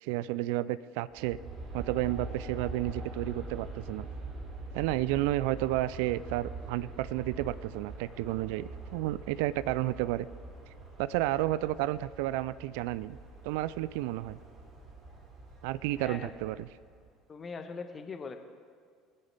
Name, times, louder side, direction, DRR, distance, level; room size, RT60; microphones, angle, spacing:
voice 1, 0.0-1.4 1.7-4.1 4.7-10.3 11.0-13.2 13.4-14.4 15.6-16.7, right 15 dB, 65° right, 18 dB, 0.3 m, -31 dB
Aircraft, 1.1-17.1, right 3 dB, 50° right, 3.0 m, -44 dB
voice 2, 16.0-16.3 17.3-18.4, left 5 dB, 30° left, 8 dB, 1.2 m, -41 dB
21.0 x 9.9 x 3.4 m, 2.2 s
figure-of-eight pair, 65°, 0 cm